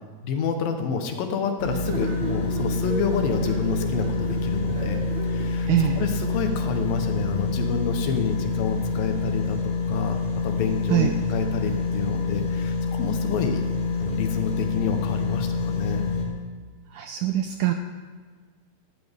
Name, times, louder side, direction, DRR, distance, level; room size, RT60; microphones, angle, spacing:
voice 1, 0.2-10.2 10.4-13.6 14.0-16.1, left 6 dB, 80° left, 5 dB, 2.8 m, -29 dB
sound 1, 1.6-16.2, left 3 dB, 45° left, 2.4 m, -27 dB
sound 2, 1.9-6.0, right 2 dB, 55° right, 2.8 m, -35 dB
voice 2, 5.7-6.0 10.9-11.2 16.9-17.7, right 12 dB, 80° right, 6 dB, 1.8 m, -23 dB
16.0 x 13.5 x 3.6 m, 1.5 s
omnidirectional pair, 4.1 m